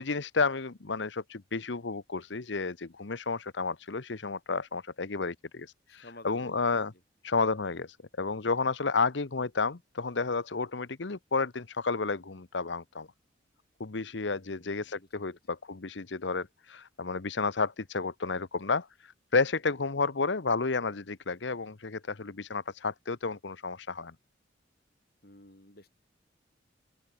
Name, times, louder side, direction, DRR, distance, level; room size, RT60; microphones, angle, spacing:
voice 1, 0.0-6.9 7.2-13.1 13.8-24.1, left 4 dB, 70° left, 1.0 m, -31 dB
voice 2, 5.9-7.0 14.3-15.4 25.2-25.9, left 1 dB, 55° left, 5.4 m, -53 dB
open air
head